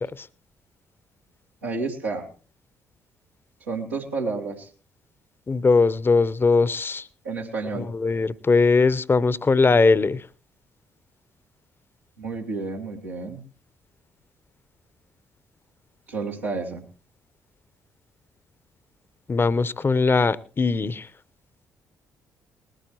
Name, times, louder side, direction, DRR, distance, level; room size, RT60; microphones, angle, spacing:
voice 1, 1.6-2.3 3.7-4.7 7.2-7.9 12.2-13.4 16.1-16.8, right 4 dB, 90° right, -5 dB, 1.9 m, -30 dB
voice 2, 5.5-7.1 7.8-10.3 19.3-21.1, left 4 dB, 30° left, 19 dB, 0.8 m, -20 dB
19.5 x 14.0 x 3.0 m, 0.35 s
hypercardioid pair, 45°, 8 cm